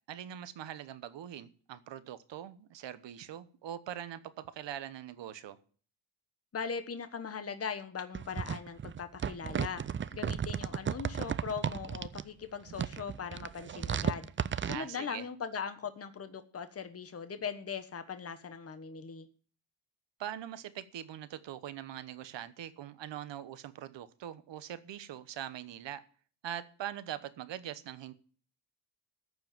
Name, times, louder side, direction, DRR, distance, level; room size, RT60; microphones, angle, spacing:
voice 1, 0.1-5.6 14.6-15.2 20.2-26.0 26.4-28.1, right 11 dB, 70° right, 1.1 m, -42 dB
voice 2, 6.5-9.8 10.1-14.3 14.6-19.3, left 6 dB, 30° left, 1.2 m, -40 dB
sound 1, 8.1-12.2 12.7-14.8, right 8 dB, 30° right, 0.4 m, -34 dB
14.0 x 4.8 x 9.1 m
cardioid pair, 95°, 44 cm